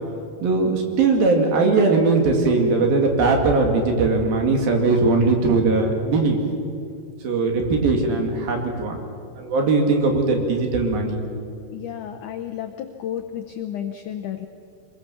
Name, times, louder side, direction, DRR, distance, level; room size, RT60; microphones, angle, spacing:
voice 1, 0.4-6.4 7.2-9.0 9.4-11.2, right 3 dB, 60° right, 2 dB, 4.0 m, -20 dB
voice 2, 11.7-14.5, left 10 dB, 80° left, 7 dB, 1.8 m, -32 dB
24.5 x 21.5 x 7.1 m, 2.4 s
omnidirectional pair, 4.8 m